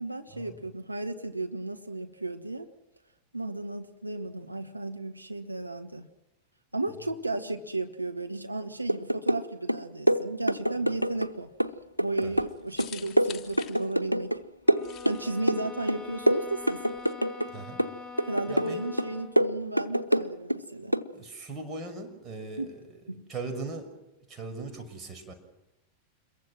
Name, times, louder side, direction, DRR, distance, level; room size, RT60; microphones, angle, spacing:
voice 1, 0.0-2.7 3.3-6.1 6.7-11.5 12.0-14.4 15.0-16.8 18.3-21.0 22.6-22.7 23.1-23.2, right 2 dB, 85° right, 5 dB, 1.5 m, -34 dB
sound 1, 8.9-9.4 9.7-11.3 11.6-14.4 14.7-15.6 15.9-17.5 17.8-18.7 19.0-20.6 20.9-21.1, equal, 90° left, 0.8 m, -26 dB
sound 2, 10.6-17.1, left 10 dB, 25° left, 3.1 m, -49 dB
sound 3, 14.6-19.4, left 4 dB, 5° right, 5.4 m, -44 dB
voice 2, 17.5-17.8 18.5-18.9 21.1-22.8 23.3-24.0 24.3-25.3, right 3 dB, 25° right, 5 dB, 5.9 m, -39 dB
27.5 x 22.5 x 6.2 m, 0.97 s
figure-of-eight pair, 90°, 0 cm